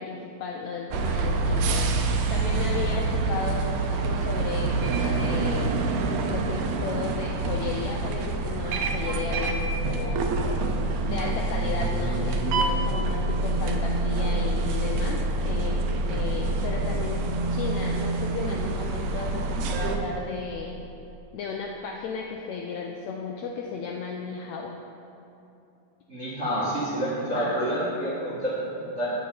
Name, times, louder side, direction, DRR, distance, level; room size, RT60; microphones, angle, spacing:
voice 1, 0.0-1.8 2.3-5.9 6.2-10.2 11.0-15.8 16.1-20.8 21.3-24.7 27.3-27.6, left 5 dB, 80° left, 1 dB, 1.6 m, -34 dB
sound 1, 0.9-20.0, right 2 dB, 75° right, 2.0 m, -26 dB
voice 2, 26.1-29.1, equal, 35° right, -8 dB, 1.1 m, -28 dB
6.8 x 6.6 x 7.9 m, 2.8 s
omnidirectional pair, 3.8 m